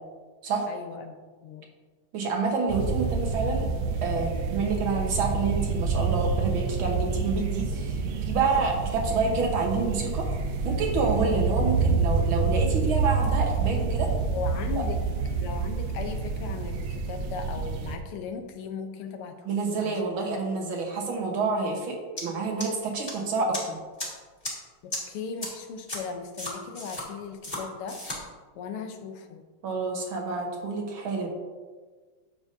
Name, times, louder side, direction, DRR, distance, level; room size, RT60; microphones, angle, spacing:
voice 1, 0.7-1.7 14.1-15.0 15.3-20.0 24.8-28.0 28.6-29.4, left 5 dB, 85° left, 6 dB, 1.7 m, -37 dB
voice 2, 2.1-3.7 4.0-10.3 10.6-14.1 14.8-14.9 19.5-23.8 29.6-31.3, right 4 dB, 70° right, 1 dB, 2.0 m, -28 dB
sound 1, 2.7-18.0, right 4 dB, 90° right, 1.7 m, -28 dB
sound 2, 22.2-22.3 22.6-23.1 23.5-23.6 24.0-24.1 24.4-24.5 24.9-25.0 25.4-25.5 25.9-26.0 26.4-27.0 27.4-27.6 27.9-28.2, left 1 dB, 20° left, 2.1 m, -33 dB
10.5 x 7.0 x 2.7 m, 1.4 s
omnidirectional pair, 2.4 m